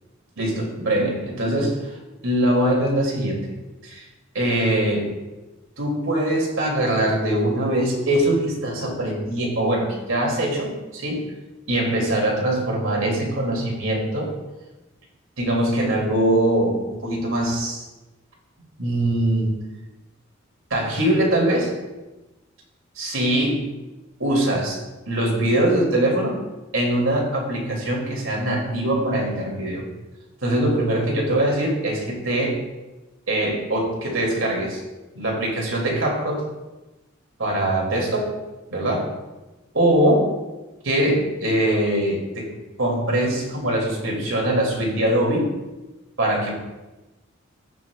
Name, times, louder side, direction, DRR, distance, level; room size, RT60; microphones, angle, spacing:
voice 1, 0.4-2.0 2.2-3.5 3.8-4.1 4.3-5.1 5.8-11.3 11.7-14.3 15.4-17.9 18.8-19.6 20.7-21.7 23.0-23.7 24.2-24.8 25.1-26.4 26.7-29.9 30.4-32.6 33.3-34.8 35.1-36.4 37.4-38.3 38.7-39.1 39.7-40.3 40.8-42.5 42.8-45.5 46.2-46.6, right 1 dB, 85° right, -2 dB, 2.8 m, -22 dB
17.5 x 6.1 x 2.4 m, 1.1 s
head